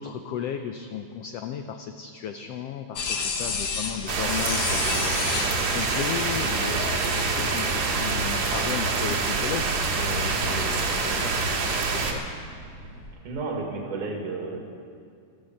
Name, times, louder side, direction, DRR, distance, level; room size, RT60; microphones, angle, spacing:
voice 1, 0.0-12.2, left 8 dB, 85° left, 7 dB, 1.3 m, -35 dB
sound 1, 3.0-11.3, left 5 dB, 60° left, 1.2 m, -34 dB
sound 2, 4.1-12.1, right 4 dB, 60° right, 2.7 m, -26 dB
sound 3, 7.6-13.1, right 1 dB, 40° left, 5.4 m, -44 dB
voice 2, 13.2-14.6, right 3 dB, 80° right, 1 dB, 3.5 m, -31 dB
13.5 x 13.0 x 7.2 m, 2.4 s
omnidirectional pair, 3.6 m